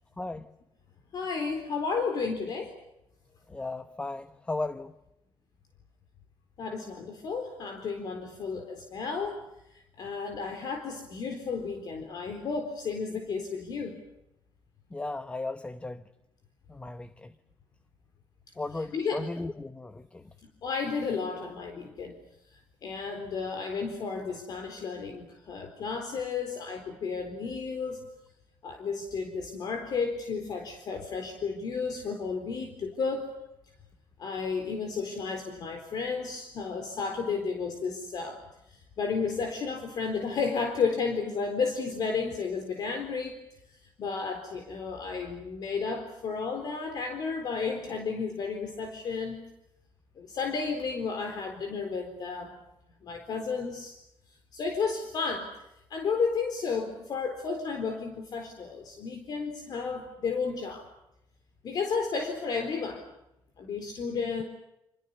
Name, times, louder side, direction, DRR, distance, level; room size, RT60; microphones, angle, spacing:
voice 1, 0.2-0.5 3.5-4.9 14.9-16.0 16.7-17.3 18.6-20.2, left 2 dB, 15° left, 11 dB, 1.0 m, -36 dB
voice 2, 1.1-2.8 6.6-9.4 9.7-14.0 18.7-19.3 20.6-22.2 22.5-28.1 28.6-33.3 34.2-38.4 38.7-43.4 43.7-49.4 50.2-52.6 53.0-54.0 54.5-55.5 55.9-60.9 61.6-63.0 63.6-64.4, left 5 dB, 50° left, 5 dB, 4.1 m, -32 dB
29.0 x 27.5 x 6.8 m, 0.88 s
cardioid pair, 150°, 9 cm